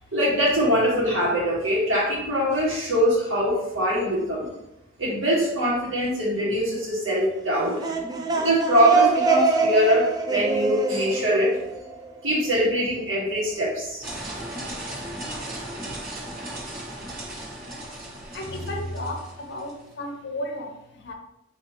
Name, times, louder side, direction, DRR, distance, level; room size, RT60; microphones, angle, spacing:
voice 1, 0.1-4.5 5.0-7.8 8.4-11.6 12.2-14.0, equal, 70° right, -5 dB, 1.5 m, -23 dB
sound 1, 7.6-12.3, right 3 dB, 20° right, 0.3 m, -24 dB
sound 2, 14.0-19.8, right 1 dB, 45° right, 1.3 m, -36 dB
voice 2, 18.3-21.1, left 1 dB, 55° left, 3 dB, 0.7 m, -33 dB
4.5 x 2.8 x 2.9 m, 0.85 s
head